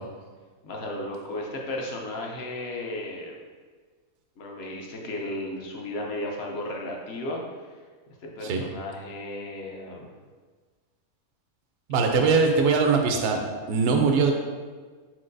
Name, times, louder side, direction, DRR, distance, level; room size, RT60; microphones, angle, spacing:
voice 1, 0.6-3.4 4.4-7.4 8.2-10.1, left 1 dB, 60° left, 0 dB, 0.8 m, -34 dB
voice 2, 11.9-13.4 13.7-14.3, right 4 dB, 70° right, 3 dB, 0.6 m, -21 dB
4.5 x 4.0 x 2.6 m, 1.5 s
omnidirectional pair, 1.5 m